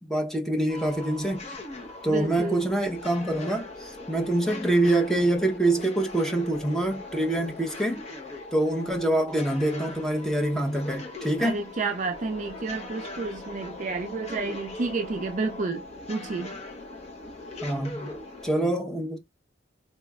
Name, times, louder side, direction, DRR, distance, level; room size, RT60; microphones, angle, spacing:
voice 1, 0.0-1.4 2.0-8.0 8.5-11.6 17.6-18.1 18.4-19.2, right 1 dB, ahead, 0.7 m, -25 dB
sound 1, 0.7-18.6, left 2 dB, 35° left, 0.7 m, -40 dB
voice 2, 2.0-2.7 11.4-16.6, right 3 dB, 40° right, 0.4 m, -31 dB
4.1 x 3.0 x 2.3 m
head